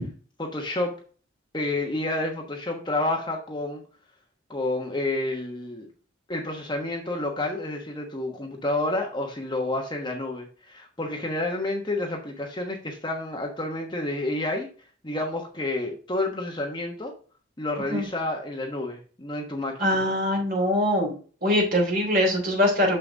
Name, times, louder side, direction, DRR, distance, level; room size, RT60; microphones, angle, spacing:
voice 1, 0.4-0.9 1.5-3.8 4.5-5.9 6.3-14.7 15.0-17.1 17.6-19.8, left 2 dB, 25° left, 2 dB, 1.1 m, -29 dB
voice 2, 19.8-21.1 21.4-23.0, left 1 dB, 45° right, 0 dB, 3.2 m, -22 dB
6.7 x 5.8 x 3.9 m, 0.40 s
head